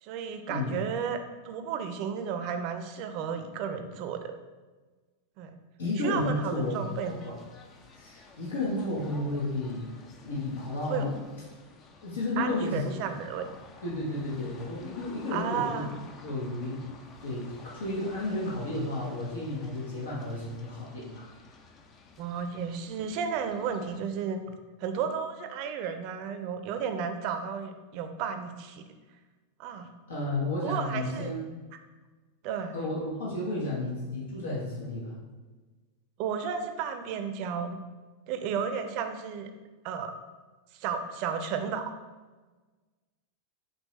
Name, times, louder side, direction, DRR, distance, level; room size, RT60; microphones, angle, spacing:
voice 1, 0.0-1.2 1.4-4.2 5.4-5.6 6.0-7.2 10.9-11.0 12.4-13.4 15.3-15.9 22.2-24.4 24.8-28.8 29.6-29.9 30.6-31.3 32.4-32.8 36.2-37.8 38.3-39.5 39.8-40.1 40.7-41.8, right 7 dB, 50° right, 7 dB, 0.5 m, -33 dB
voice 2, 5.8-7.3 7.9-9.9 10.2-11.3 12.0-13.1 13.8-15.9 16.2-16.8 17.2-21.3 30.1-31.5 32.7-35.2, left 2 dB, 75° left, -5 dB, 1.0 m, -32 dB
sound 1, 6.6-24.0, left 4 dB, 35° left, 0.5 m, -52 dB
5.2 x 3.0 x 3.1 m, 1.3 s
figure-of-eight pair, 90°, 0 cm